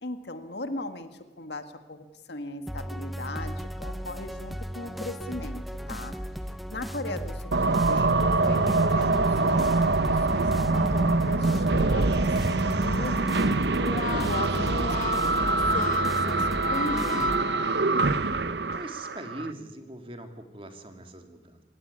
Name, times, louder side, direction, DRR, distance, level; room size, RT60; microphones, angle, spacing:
voice 1, 0.0-1.1 1.4-6.1 6.7-13.6 14.2-17.7, left 1 dB, 70° left, 9 dB, 1.8 m, -38 dB
sound 1, 2.7-17.4, equal, ahead, 0.9 m, -36 dB
sound 2, 7.5-19.5, right 3 dB, 70° right, 0.9 m, -24 dB
Brass instrument, 13.7-18.2, left 4 dB, 45° left, 2.0 m, -36 dB
voice 2, 13.9-14.4 18.7-21.6, right 1 dB, 30° right, 6 dB, 2.7 m, -42 dB
27.5 x 17.0 x 9.7 m, 1.1 s
head